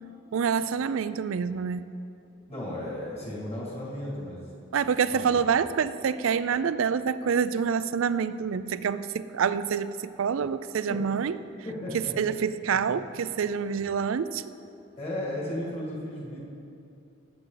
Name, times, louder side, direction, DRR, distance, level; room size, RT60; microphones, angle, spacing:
voice 1, 0.3-1.8 4.7-9.9 10.2-11.3 11.9-14.4, right 6 dB, 75° right, 14 dB, 0.4 m, -27 dB
voice 2, 2.5-4.5 5.1-5.5 10.9-11.0 11.7-12.1 12.7-13.0 15.0-16.4, left 1 dB, 30° left, -4 dB, 2.1 m, -35 dB
18.0 x 7.8 x 3.9 m, 2.7 s
head